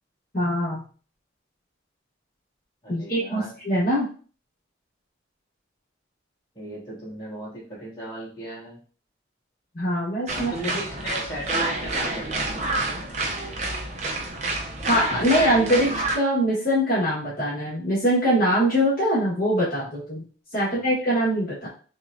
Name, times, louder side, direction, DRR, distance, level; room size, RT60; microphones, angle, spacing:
voice 1, 0.3-0.8 2.9-4.1 9.7-10.5 14.9-20.3 20.5-21.7, equal, 45° left, -8 dB, 1.4 m, -23 dB
voice 2, 2.8-3.5 6.5-8.8 10.3-13.0 20.6-20.9, equal, 20° left, -9 dB, 2.1 m, -36 dB
sound 1, 10.3-16.2, right 2 dB, 35° right, 0.5 m, -28 dB
6.1 x 2.3 x 2.5 m, 0.39 s
head